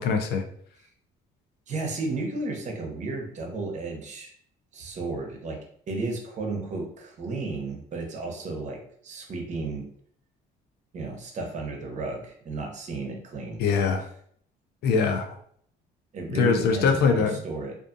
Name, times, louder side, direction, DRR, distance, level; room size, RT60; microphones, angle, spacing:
voice 1, 0.0-0.4 13.6-14.0 14.8-15.3 16.3-17.4, left 5 dB, 70° left, 6 dB, 0.4 m, -22 dB
voice 2, 1.7-4.3 4.7-5.6 5.9-9.9 10.9-13.6 16.1-17.8, right 3 dB, 45° right, 2 dB, 0.7 m, -33 dB
2.4 x 2.4 x 2.5 m, 0.63 s
cardioid pair, 110°, 17 cm